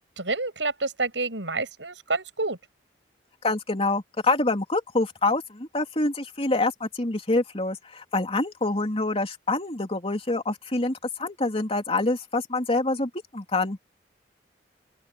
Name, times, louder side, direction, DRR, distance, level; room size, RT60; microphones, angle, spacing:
voice 1, 0.0-2.6, right 3 dB, 90° right, 7.0 m, -29 dB
voice 2, 3.4-13.8, left 2 dB, 35° left, 3.1 m, -26 dB
open air
head